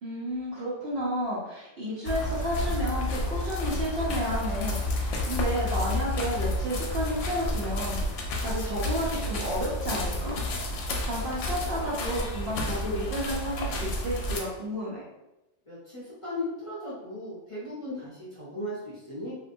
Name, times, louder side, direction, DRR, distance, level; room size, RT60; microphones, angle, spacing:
voice 1, 0.0-10.4 10.8-15.0, equal, 60° right, -5 dB, 0.9 m, -32 dB
sound 1, 2.1-14.4, left 1 dB, 90° left, 0.9 m, -30 dB
voice 2, 15.6-19.3, left 1 dB, 30° left, -9 dB, 0.7 m, -37 dB
2.6 x 2.2 x 2.6 m, 0.95 s
omnidirectional pair, 1.2 m